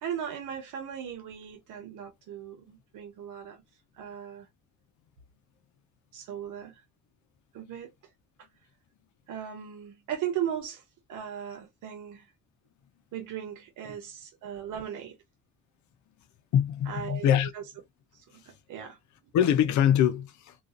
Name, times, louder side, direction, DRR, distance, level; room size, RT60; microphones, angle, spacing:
voice 1, 0.0-3.6 4.0-4.5 6.1-6.8 7.5-7.9 9.3-10.8 11.1-12.3 13.1-15.2 16.9-17.3 17.5-17.6 18.3-19.0 19.2-19.3, right 9 dB, 90° right, 0.9 m, -37 dB
voice 2, 16.5-17.5 19.3-20.6, left 9 dB, 75° left, 0.6 m, -23 dB
2.4 x 2.4 x 2.4 m
cardioid pair, 90°, 30 cm